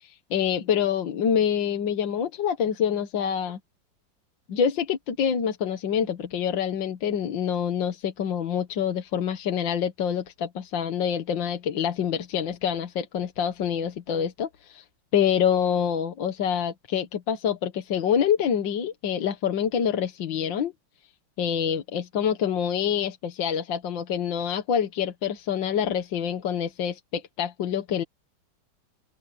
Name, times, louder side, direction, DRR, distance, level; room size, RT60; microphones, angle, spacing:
voice 1, 0.0-3.6 4.5-14.8 15.1-20.7 21.4-28.0, left 8 dB, 75° left, 1.9 m, -26 dB
open air
omnidirectional pair, 2.1 m